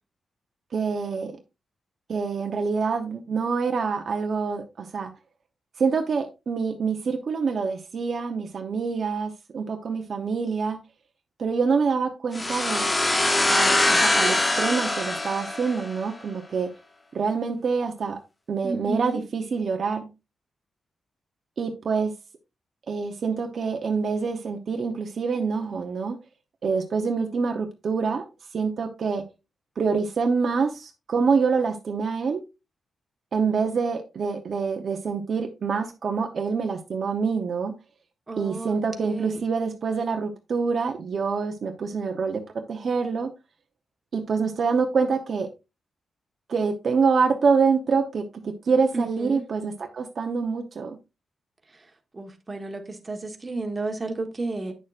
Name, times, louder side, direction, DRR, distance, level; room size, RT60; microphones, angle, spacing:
voice 1, 0.7-1.3 2.1-5.1 5.8-10.8 11.4-12.9 13.5-16.7 17.1-18.2 18.5-20.1 21.6-22.1 22.9-26.2 26.6-28.2 28.5-29.2 29.8-32.4 33.3-37.8 38.4-42.4 42.7-43.3 44.1-45.5 46.5-51.0, right 5 dB, 50° right, 0.8 m, -26 dB
sound 1, 12.3-16.1, left 2 dB, 20° left, 0.8 m, -23 dB
voice 2, 18.6-19.2 38.3-39.5 48.9-49.5 52.1-54.7, right 3 dB, 20° right, 1.2 m, -32 dB
9.1 x 6.6 x 2.4 m
wide cardioid pair, 130°, 0 cm